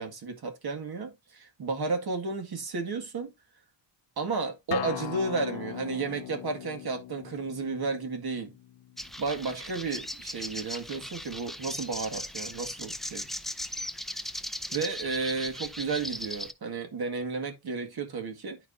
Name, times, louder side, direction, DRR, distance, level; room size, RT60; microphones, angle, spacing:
voice 1, 0.0-3.3 4.2-8.5 9.2-13.3 14.7-18.6, right 4 dB, 55° right, 2.0 m, -33 dB
Acoustic guitar, 4.7-9.9, left 12 dB, 65° left, 0.6 m, -40 dB
sound 1, 9.0-16.5, equal, ahead, 0.4 m, -38 dB
11.0 x 4.7 x 2.7 m
wide cardioid pair, 135°, 44 cm